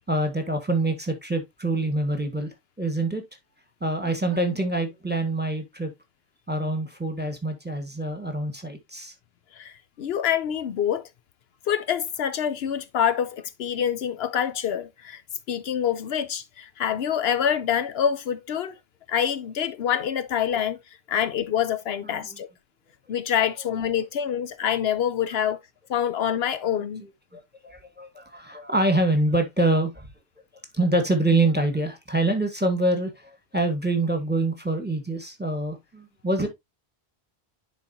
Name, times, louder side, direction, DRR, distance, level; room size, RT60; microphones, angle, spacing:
voice 1, 0.1-2.5 2.8-3.2 3.8-5.9 6.5-9.1 22.0-22.2 26.8-26.9 27.3-30.0 30.7-36.5, right 2 dB, 10° right, 1.5 m, -25 dB
voice 2, 9.6-11.0 11.7-15.2 15.5-18.7 19.1-20.8 21.1-22.5 23.1-25.6 25.9-27.0, left 9 dB, 75° left, 0.9 m, -26 dB
10.5 x 4.0 x 2.8 m
omnidirectional pair, 1.1 m